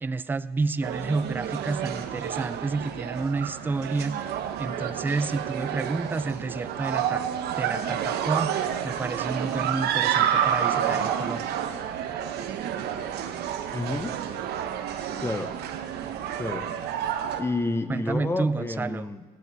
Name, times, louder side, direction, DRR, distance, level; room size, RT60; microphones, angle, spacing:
voice 1, 0.0-4.3 4.6-7.3 7.6-11.6 17.9-19.1, right 3 dB, 10° right, 14 dB, 0.3 m, -30 dB
sound 1, 0.8-17.4, right 9 dB, 75° right, 0.9 m, -29 dB
voice 2, 13.7-14.2 15.2-15.6 16.4-16.7 17.4-19.2, left 2 dB, 15° left, 9 dB, 0.7 m, -30 dB
18.0 x 9.0 x 4.0 m, 1.4 s
cardioid pair, 110°, 17 cm